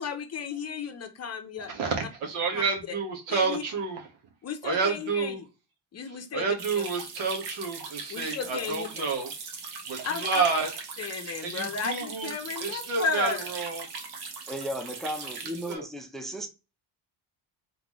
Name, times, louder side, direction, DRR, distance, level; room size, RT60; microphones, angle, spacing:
voice 1, 0.0-1.7 3.3-3.6 4.4-5.3 5.9-6.5 8.1-8.9 10.0-10.4 11.0-13.4, left 6 dB, 35° left, 0.8 m, -33 dB
voice 2, 1.7-4.1 4.6-5.4 6.1-9.3 9.9-10.7 11.4-12.3 12.6-13.9 15.4-15.8, right 4 dB, 85° right, 1.6 m, -29 dB
sound 1, 6.6-15.7, right 4 dB, 55° right, 1.2 m, -39 dB
voice 3, 14.5-16.5, equal, ahead, 0.6 m, -35 dB
3.8 x 3.8 x 3.0 m
cardioid pair, 115°, 45 cm